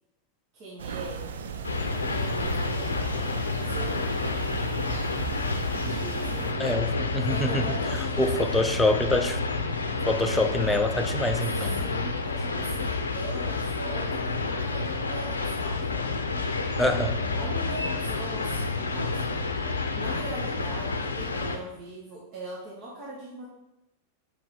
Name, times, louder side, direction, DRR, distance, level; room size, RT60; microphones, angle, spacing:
voice 1, 0.5-1.3 2.1-4.1 5.7-6.6 7.1-8.6 11.4-15.9 17.2-19.2 19.9-23.4, right 2 dB, 45° right, -5 dB, 1.4 m, -40 dB
sound 1, 0.8-6.5, right 6 dB, 65° right, 0.5 m, -36 dB
sound 2, 1.6-21.6, left 3 dB, 75° left, 0.6 m, -29 dB
voice 2, 6.6-7.7 7.9-9.4 10.0-11.9 16.8-17.2, left 2 dB, 5° left, 6 dB, 0.6 m, -26 dB
5.3 x 4.6 x 4.9 m, 0.91 s
figure-of-eight pair, 90°, 0 cm